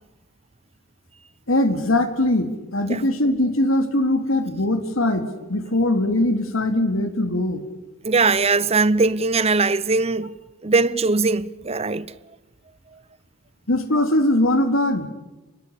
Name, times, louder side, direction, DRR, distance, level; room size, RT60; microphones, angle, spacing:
voice 1, 1.5-7.6 13.7-15.1, left 1 dB, 90° left, 3.0 m, -21 dB
voice 2, 8.0-10.4 10.6-12.1, right 3 dB, 30° right, 0.8 m, -20 dB
29.5 x 21.0 x 8.6 m
head